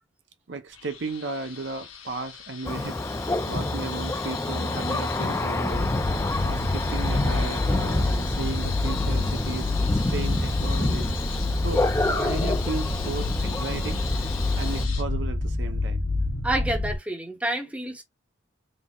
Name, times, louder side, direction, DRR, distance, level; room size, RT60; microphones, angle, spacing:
voice 1, 0.5-11.1 11.6-14.0 14.6-16.1, right 3 dB, 60° right, 0.6 m, -35 dB
sound 1, 0.7-15.0, left 8 dB, 85° left, 1.0 m, -40 dB
Thunder, 2.6-14.9, left 2 dB, 15° left, 0.3 m, -28 dB
sound 2, 5.7-17.0, left 2 dB, 60° left, 1.0 m, -28 dB
voice 2, 16.4-18.0, right 1 dB, 5° right, 0.8 m, -28 dB
4.1 x 2.0 x 3.6 m
head